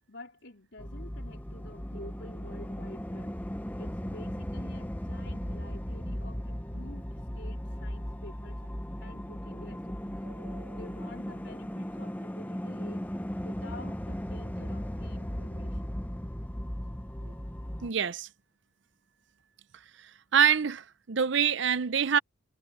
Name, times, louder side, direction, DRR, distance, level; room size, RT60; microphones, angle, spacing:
voice 1, 0.1-3.4 3.8-7.1 7.3-8.6 9.0-10.2 10.7-13.0 13.4-16.0, left 1 dB, 60° left, 4.2 m, -49 dB
sound 1, 0.8-17.9, equal, 10° left, 0.8 m, -37 dB
voice 2, 10.2-10.8 17.8-18.3 20.3-22.2, right 7 dB, 65° right, 0.6 m, -26 dB
head